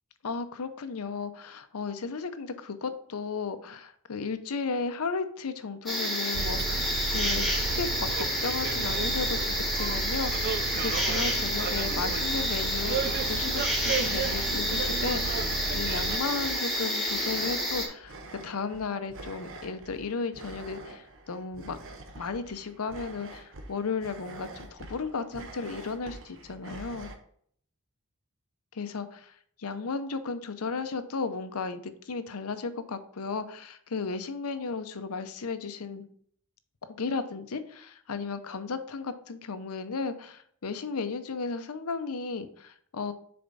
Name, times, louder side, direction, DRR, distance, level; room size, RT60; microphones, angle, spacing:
voice 1, 0.2-21.8 22.2-27.1 28.7-36.1 36.8-43.1, left 4 dB, 75° left, 10 dB, 0.7 m, -35 dB
sound 1, 5.9-17.9, equal, ahead, 1.5 m, -29 dB
Bus, 6.3-16.2, right 5 dB, 45° right, 0.3 m, -33 dB
sound 2, 11.5-27.2, right 2 dB, 60° right, 1.0 m, -45 dB
6.8 x 4.3 x 4.0 m, 0.62 s
head